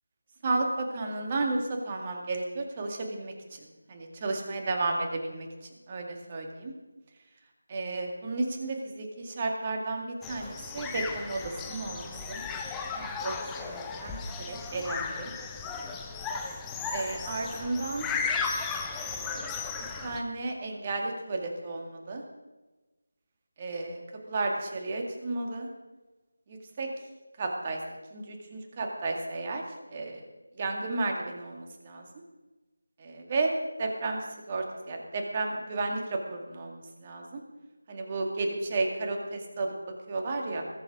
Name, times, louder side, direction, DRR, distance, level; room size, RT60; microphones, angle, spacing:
voice 1, 0.4-5.5 5.9-6.7 7.7-12.4 13.0-14.2 14.5-15.3 16.9-18.1 18.9-19.6 20.0-22.2 23.6-24.0 24.3-25.7 26.5-26.9 27.4-27.8 28.1-29.6 29.9-30.2 30.6-32.0 33.0-33.5 33.8-34.2 34.5-37.4 37.9-39.7 40.1-40.6, right 3 dB, 25° right, 2 dB, 2.1 m, -33 dB
sound 1, 10.2-20.2, left 5 dB, 10° left, 0.8 m, -35 dB
21.0 x 7.5 x 4.8 m, 1.2 s
figure-of-eight pair, 165°, 0 cm